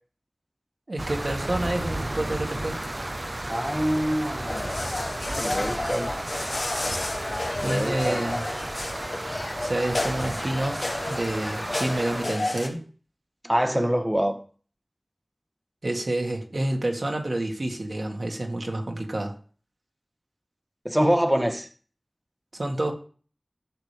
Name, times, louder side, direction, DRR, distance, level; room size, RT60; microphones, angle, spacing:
voice 1, 0.9-2.8 7.6-8.4 9.6-12.8 15.8-19.4 22.5-22.9, right 1 dB, 75° right, 1.9 m, -28 dB
sound 1, 1.0-12.3, right 1 dB, 40° right, 0.3 m, -33 dB
voice 2, 3.5-4.8 5.3-6.1 7.6-8.2 13.4-14.4 20.8-21.7, equal, 10° right, 1.2 m, -25 dB
sound 2, 4.5-12.7, left 2 dB, 85° left, 1.6 m, -31 dB
14.5 x 7.1 x 3.5 m
wide cardioid pair, 45°, 0 cm